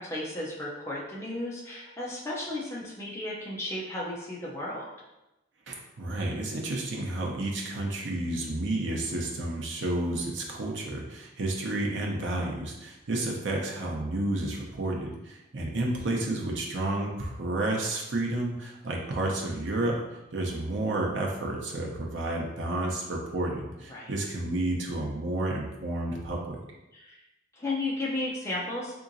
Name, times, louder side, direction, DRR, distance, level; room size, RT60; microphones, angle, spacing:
voice 1, 0.0-4.9 23.9-24.1 26.9-27.2 27.6-28.9, left 2 dB, 15° left, -6 dB, 0.5 m, -34 dB
voice 2, 5.7-20.0 20.3-26.6, right 2 dB, 70° right, -1 dB, 0.7 m, -31 dB
3.6 x 2.9 x 2.6 m, 0.96 s
head